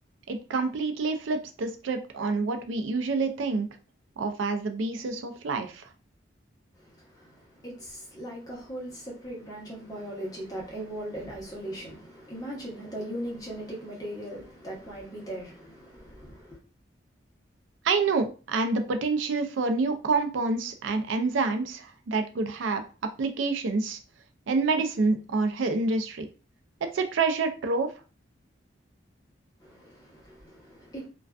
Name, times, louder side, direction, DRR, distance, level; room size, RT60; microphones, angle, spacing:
voice 1, 0.3-3.7 4.2-5.8 17.8-24.0 24.5-26.3 26.9-27.9, right 3 dB, 85° right, 0.4 m, -27 dB
voice 2, 6.7-16.6 29.6-31.1, right 1 dB, 20° left, 0.8 m, -39 dB
2.4 x 2.2 x 2.3 m
head